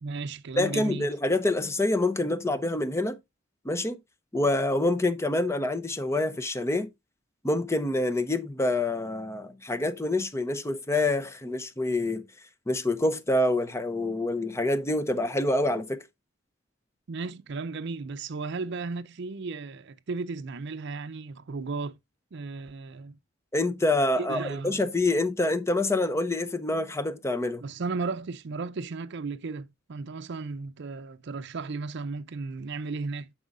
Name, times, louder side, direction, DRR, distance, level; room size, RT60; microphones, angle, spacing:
voice 1, 0.0-1.1 17.1-22.0 22.3-23.2 24.2-24.8 27.6-33.3, right 4 dB, 65° right, 0.5 m, -35 dB
voice 2, 0.6-3.2 3.6-4.0 4.3-6.9 7.4-12.2 12.7-16.0 23.5-27.6, left 2 dB, 15° left, 0.6 m, -26 dB
9.1 x 6.1 x 2.4 m
head